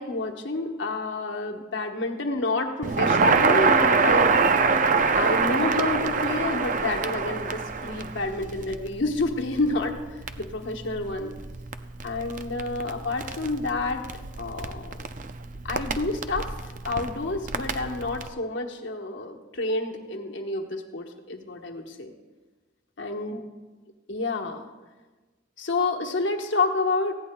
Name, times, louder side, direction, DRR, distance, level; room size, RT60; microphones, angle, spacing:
voice 1, 0.0-4.3 5.1-11.3 12.0-14.0 14.4-15.1 15.6-22.1 23.0-23.4 24.1-24.7 25.6-27.2, left 3 dB, 60° left, 3 dB, 1.2 m, -29 dB
Crackle, 2.8-18.3, right 4 dB, 40° right, 0.5 m, -26 dB
19.0 x 15.5 x 2.3 m, 1.3 s
head